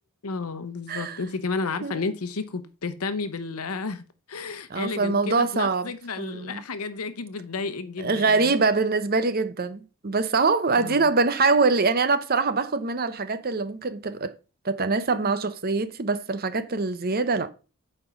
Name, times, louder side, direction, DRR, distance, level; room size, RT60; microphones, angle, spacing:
voice 1, 0.2-8.5 10.7-11.1, left 4 dB, 80° left, 0.8 m, -32 dB
voice 2, 0.9-1.2 1.8-2.0 4.7-5.9 6.2-6.6 8.0-14.3 14.6-17.5, right 4 dB, 45° right, 0.8 m, -24 dB
9.0 x 4.4 x 5.8 m
head